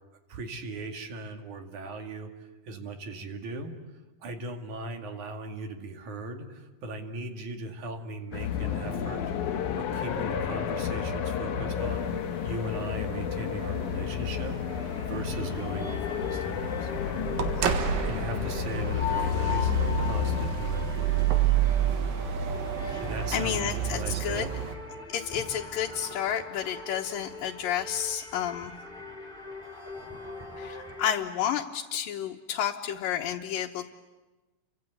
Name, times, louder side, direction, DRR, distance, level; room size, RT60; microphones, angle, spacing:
voice 1, 0.3-2.3 2.7-3.7 4.2-9.2 9.8-14.6 15.0-16.9 18.1-19.7 20.0-21.2 23.0-24.5, right 2 dB, 65° right, 4 dB, 3.7 m, -38 dB
sound 1, 8.3-20.5, left 8 dB, 70° left, 2.6 m, -31 dB
sound 2, 11.8-24.8, right 8 dB, 80° right, 3.3 m, -30 dB
sound 3, 14.7-31.1, left 4 dB, 15° left, 5.0 m, -40 dB
voice 2, 23.3-24.5 25.1-28.7 30.6-33.9, left 9 dB, 85° left, 0 dB, 2.8 m, -31 dB
30.0 x 24.5 x 8.0 m, 1.2 s
omnidirectional pair, 3.9 m